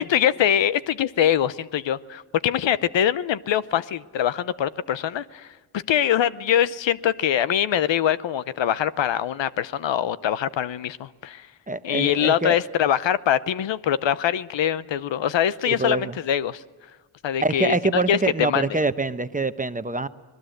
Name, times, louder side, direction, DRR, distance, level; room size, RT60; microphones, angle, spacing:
voice 1, 0.0-5.5 5.9-11.5 11.8-16.6 17.2-18.7, left 10 dB, 70° left, 16 dB, 0.8 m, -23 dB
voice 2, 11.7-12.6 15.7-16.2 17.4-20.1, right 3 dB, 15° right, 11 dB, 1.0 m, -25 dB
25.0 x 20.0 x 7.9 m, 1.3 s
cardioid pair, 55°, 46 cm